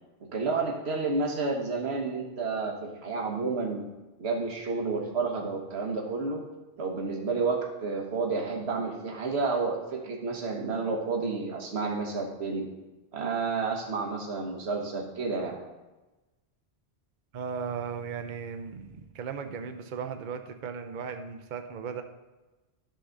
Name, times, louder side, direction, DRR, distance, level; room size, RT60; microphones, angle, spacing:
voice 1, 0.2-3.8 4.2-6.4 6.8-12.7 13.1-15.6, right 4 dB, 80° right, 1 dB, 1.4 m, -30 dB
voice 2, 17.3-22.0, right 6 dB, 55° right, 7 dB, 0.7 m, -36 dB
11.5 x 3.8 x 6.4 m, 1.1 s
omnidirectional pair, 1.1 m